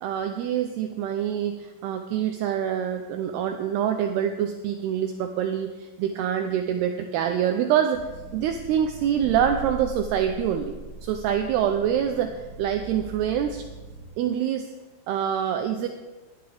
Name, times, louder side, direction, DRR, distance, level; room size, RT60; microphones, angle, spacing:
voice 1, 0.0-8.1 8.3-10.7 11.0-13.6 14.2-14.7 15.1-15.9, right 9 dB, 85° right, 6 dB, 2.3 m, -25 dB
sound 1, 7.9-14.1, right 3 dB, 70° right, 1.8 m, -40 dB
18.5 x 11.0 x 3.5 m, 1.2 s
omnidirectional pair, 5.4 m